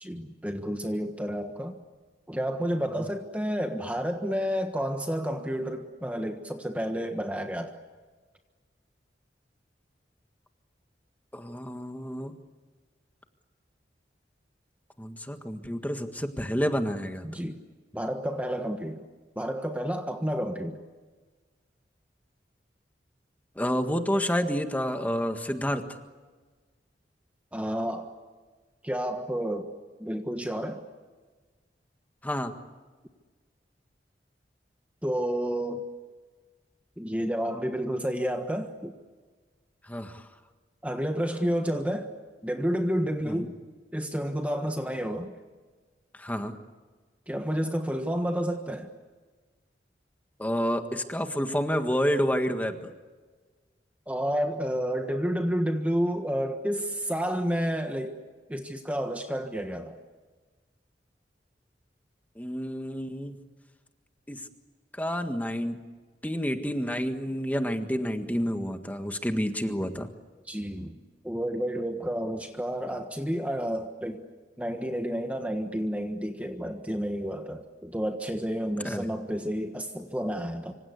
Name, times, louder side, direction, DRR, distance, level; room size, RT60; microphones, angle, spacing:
voice 1, 0.0-1.8 2.3-7.8 17.2-17.6 17.9-19.0 19.3-20.8 27.5-28.1 28.8-29.7 30.0-30.8 35.0-35.8 37.0-38.9 40.8-42.1 42.4-43.5 43.9-45.3 47.3-48.9 54.1-58.2 58.5-60.0 70.5-74.2 74.6-80.7, equal, 10° right, 5 dB, 1.4 m, -30 dB
voice 2, 11.3-12.4 15.0-17.3 23.6-25.8 32.2-32.5 39.8-40.3 43.3-43.5 46.1-46.5 50.4-52.9 62.4-63.4 64.3-64.4 64.9-65.8 66.2-70.1 78.8-79.1, equal, 10° left, 6 dB, 1.6 m, -29 dB
26.0 x 25.5 x 8.3 m, 1.4 s
head